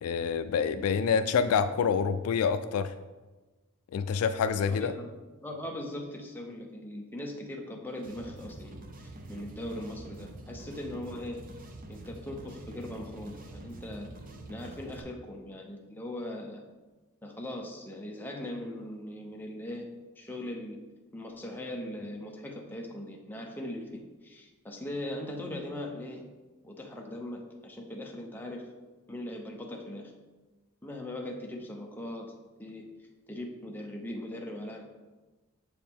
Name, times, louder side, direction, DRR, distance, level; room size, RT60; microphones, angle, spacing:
voice 1, 0.0-2.9 3.9-4.9, left 6 dB, 75° left, 12 dB, 0.3 m, -27 dB
voice 2, 4.7-8.8 9.3-11.4 11.9-14.1 14.5-16.6 17.2-19.9 20.2-20.8 21.1-26.2 26.6-28.7 29.1-30.1 30.8-32.3 32.6-32.9 33.3-34.8, left 1 dB, 10° left, 1 dB, 0.7 m, -40 dB
sound 1, 8.0-15.0, right 1 dB, 40° right, 0.6 m, -46 dB
7.0 x 4.8 x 3.5 m, 1.2 s
head